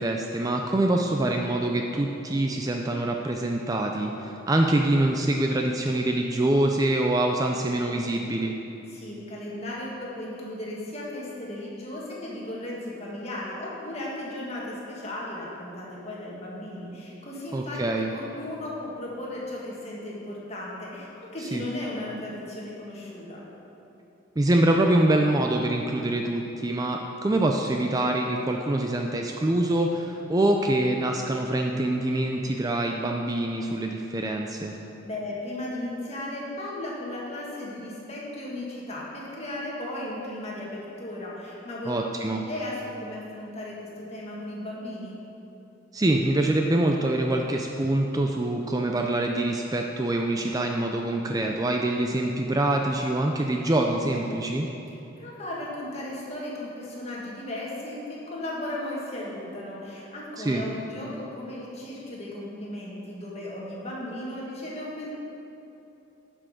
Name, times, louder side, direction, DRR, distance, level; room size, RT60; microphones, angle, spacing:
voice 1, 0.0-8.5 17.5-18.1 21.4-21.6 24.4-34.8 41.9-42.4 45.9-54.7 60.4-60.6, right 1 dB, 20° right, 2 dB, 0.4 m, -25 dB
voice 2, 8.9-23.4 35.0-41.9 42.3-45.3 55.2-65.1, left 1 dB, 35° left, -5 dB, 1.9 m, -36 dB
11.0 x 6.2 x 5.0 m, 3.0 s
head